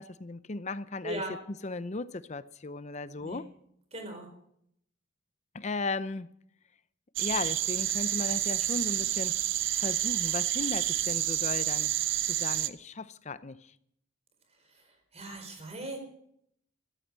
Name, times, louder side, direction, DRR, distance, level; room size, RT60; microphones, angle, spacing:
voice 1, 0.0-1.2 1.5-3.4 5.5-6.3 7.2-9.4 9.8-11.9 12.3-13.7, left 3 dB, 35° left, 0.6 m, -36 dB
voice 2, 1.0-1.3 3.2-3.4 3.9-4.3 14.7-14.8 15.1-16.0, right 1 dB, 35° right, 4.3 m, -38 dB
sound 1, 7.2-12.7, right 13 dB, 70° right, 0.8 m, -29 dB
14.0 x 13.5 x 7.5 m
head